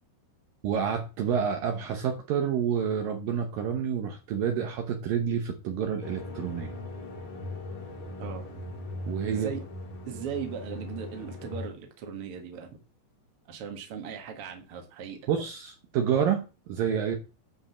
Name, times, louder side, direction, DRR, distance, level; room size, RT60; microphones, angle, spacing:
voice 1, 0.6-6.7 9.1-9.5 15.3-17.2, right 8 dB, 70° right, 4 dB, 2.5 m, -28 dB
sound 1, 6.0-11.7, left 2 dB, 45° left, 3.2 m, -39 dB
voice 2, 10.1-12.7 13.5-15.2, right 7 dB, 45° right, 4 dB, 2.0 m, -38 dB
10.0 x 5.3 x 7.3 m, 0.33 s
omnidirectional pair, 4.8 m